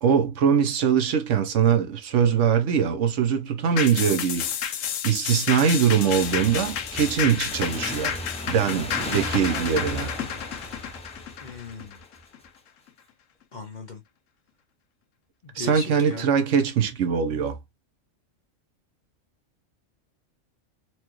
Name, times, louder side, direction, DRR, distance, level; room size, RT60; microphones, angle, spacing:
voice 1, 0.0-4.5 5.0-8.2 8.5-10.1 15.5-17.6, right 7 dB, 70° right, 1.0 m, -22 dB
sound 1, 3.8-12.5 12.9-13.0, left 9 dB, 75° left, 1.0 m, -31 dB
Motorcycle / Engine, 6.1-12.4, left 1 dB, 5° left, 0.5 m, -36 dB
sound 2, 9.1-11.3, right 3 dB, 35° right, 0.7 m, -44 dB
voice 2, 11.4-12.0 13.5-14.0 15.4-16.3, left 4 dB, 45° left, 0.7 m, -38 dB
4.5 x 2.3 x 2.9 m
omnidirectional pair, 1.3 m